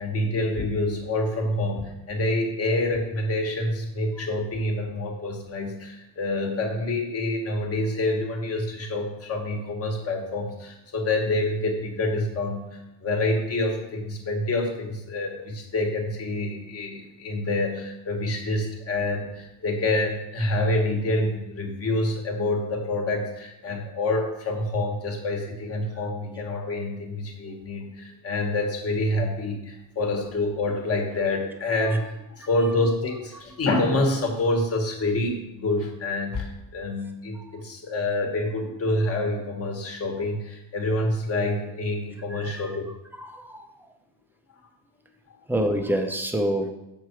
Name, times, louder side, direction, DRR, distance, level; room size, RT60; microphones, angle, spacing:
voice 1, 0.0-42.9, left 2 dB, 40° left, 2 dB, 1.5 m, -27 dB
voice 2, 42.3-42.6 43.2-43.6 45.5-46.7, right 1 dB, 5° right, 5 dB, 0.6 m, -26 dB
6.9 x 6.6 x 4.6 m, 0.89 s
cardioid pair, 170°, 38 cm